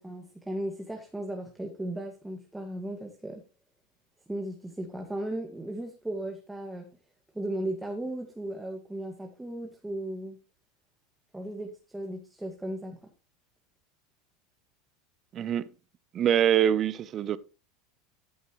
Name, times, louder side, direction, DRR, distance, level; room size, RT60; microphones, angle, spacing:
voice 1, 0.0-3.4 4.3-6.9 7.3-10.4 11.3-13.0, right 1 dB, 5° right, 1.9 m, -36 dB
voice 2, 15.3-15.7 16.1-17.4, right 10 dB, 40° right, 0.9 m, -24 dB
13.5 x 8.1 x 3.1 m
hypercardioid pair, 95°, 0 cm